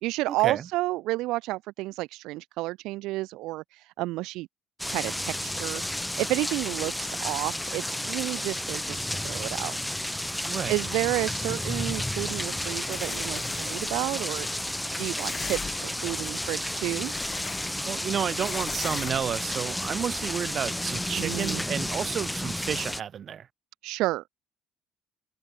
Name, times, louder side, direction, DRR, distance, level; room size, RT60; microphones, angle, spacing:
voice 1, 0.0-4.5 4.9-9.8 10.7-14.5 15.0-17.1 21.2-21.6 23.8-24.3, right 19 dB, 75° right, 0.3 m, -31 dB
sound 1, 4.8-23.0, left 1 dB, 5° left, 0.4 m, -32 dB
sound 2, 12.0-14.0 15.1-16.0 16.6-18.0 18.3-19.5 21.2-21.5, left 5 dB, 20° left, 0.9 m, -40 dB
voice 2, 17.9-23.5, right 8 dB, 35° right, 1.5 m, -31 dB
cardioid pair, 165°, 0 cm